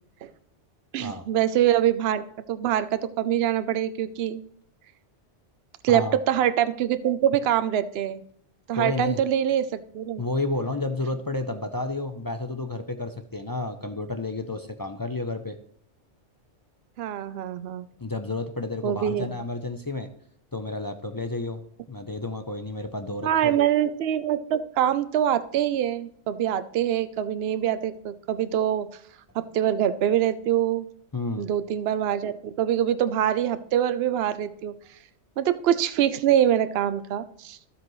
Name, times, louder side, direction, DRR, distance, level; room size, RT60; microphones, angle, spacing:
voice 1, 0.9-4.4 5.8-8.2 8.7-10.2 17.0-17.9 18.8-19.3 23.2-28.9 29.3-30.9 31.4-34.8 35.4-37.6, right 10 dB, 65° right, 13 dB, 0.8 m, -24 dB
voice 2, 5.9-6.2 8.7-9.2 10.2-15.6 18.0-20.1 20.5-23.6 31.1-31.5, left 2 dB, 30° left, 6 dB, 0.4 m, -31 dB
13.0 x 7.6 x 3.1 m, 0.66 s
omnidirectional pair, 1.2 m